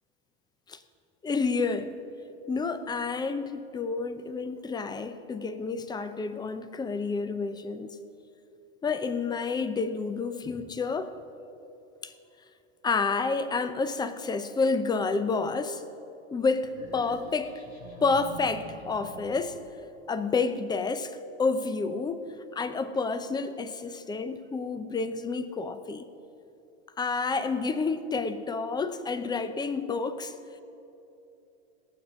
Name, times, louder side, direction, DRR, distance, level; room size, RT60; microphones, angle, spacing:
voice 1, 1.2-2.0 2.5-8.0 8.8-11.1 12.0-12.1 12.8-15.8 16.3-17.5 18.0-19.6 20.1-22.2 22.5-26.1 27.0-30.3, left 4 dB, 10° left, 12 dB, 0.6 m, -29 dB
sound 1, 16.7-19.7, equal, 90° left, 3.0 m, -45 dB
17.0 x 7.1 x 6.2 m, 2.9 s
hypercardioid pair, 115°, 34 cm